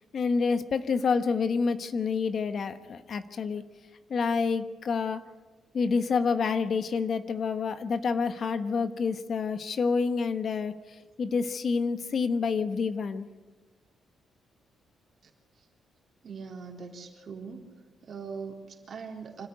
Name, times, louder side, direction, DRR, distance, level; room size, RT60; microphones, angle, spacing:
voice 1, 0.1-3.6 4.1-5.2 5.7-13.3, left 5 dB, 45° left, 10 dB, 1.1 m, -28 dB
voice 2, 16.2-17.7 18.0-19.5, right 5 dB, 45° right, 1 dB, 3.9 m, -41 dB
26.0 x 13.5 x 9.3 m, 1.3 s
cardioid pair, 145°, 0 cm